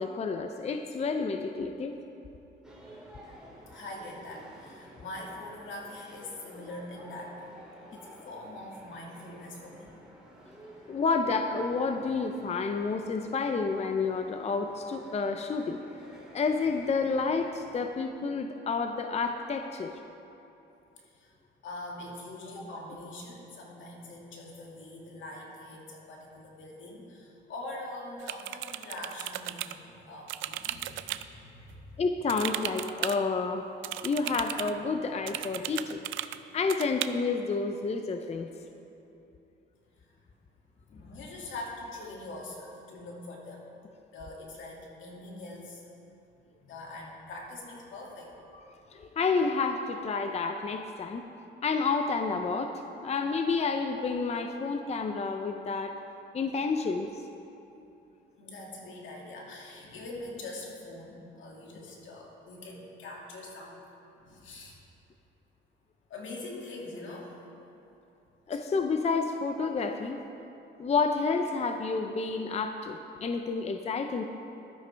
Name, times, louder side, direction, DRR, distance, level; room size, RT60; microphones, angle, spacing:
voice 1, 0.0-2.0 10.9-15.8 16.3-19.9 32.0-33.6 34.0-36.0 36.5-38.5 48.5-48.6 48.9-51.2 51.6-56.0 56.3-57.2 68.5-70.2 70.8-74.2, left 4 dB, 35° left, 6 dB, 0.6 m, -30 dB
sound 1, 2.6-17.9, equal, 5° right, 2.9 m, -52 dB
voice 2, 3.7-7.5 7.9-9.9 21.1-21.3 21.6-32.0 40.0-40.1 40.9-43.6 44.1-45.8 46.7-48.3 58.4-63.8 64.2-64.8 66.1-67.4, left 2 dB, 75° left, -2 dB, 2.4 m, -43 dB
sound 2, 28.2-29.8 30.3-31.2 32.3-33.2 33.8-34.7 35.3-36.4 36.7-37.1, right 13 dB, 80° right, 0.4 m, -35 dB
14.5 x 12.0 x 3.4 m, 2.9 s
cardioid pair, 90°, 20 cm